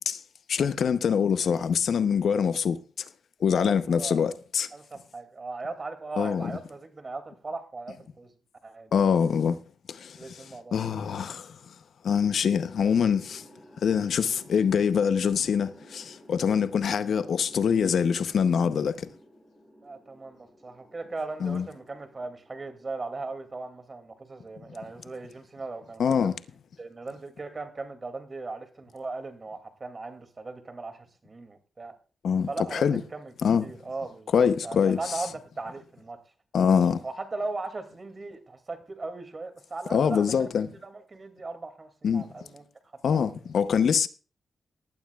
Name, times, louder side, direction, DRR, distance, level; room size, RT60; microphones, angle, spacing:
voice 1, 0.5-2.8 3.4-4.7 6.2-6.5 8.9-9.6 9.9-10.4 10.7-11.5 12.0-13.4 13.8-19.1 21.4-21.7 26.0-26.3 32.2-33.0 33.4-33.6 34.3-35.0 36.5-37.0 39.9-40.7 42.0-42.2 43.0-44.1, left 7 dB, 75° left, 0.7 m, -24 dB
voice 2, 3.5-4.2 4.7-8.3 8.6-8.9 10.1-10.8 19.8-26.4 26.8-32.0 32.5-33.3 33.6-36.2 37.0-40.5 40.8-42.6 43.1-43.3, right 3 dB, 40° right, 2.5 m, -38 dB
sound 1, 12.2-24.5, equal, 5° right, 6.5 m, -54 dB
19.0 x 11.5 x 2.4 m
cardioid pair, 75°, 0 cm